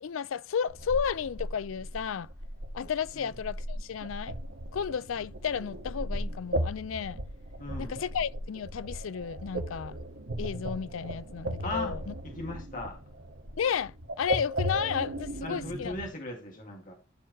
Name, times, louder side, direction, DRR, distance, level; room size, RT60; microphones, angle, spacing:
voice 1, 0.0-2.3 2.7-4.4 4.7-7.2 7.8-10.0 10.4-12.1 13.6-16.0, left 7 dB, 85° left, 0.4 m, -33 dB
sound 1, 0.7-16.1, equal, 85° right, 1.7 m, -37 dB
voice 2, 7.6-8.0 11.6-12.0 12.2-13.0 15.4-16.9, left 2 dB, 40° left, 2.1 m, -37 dB
13.0 x 4.7 x 3.1 m
head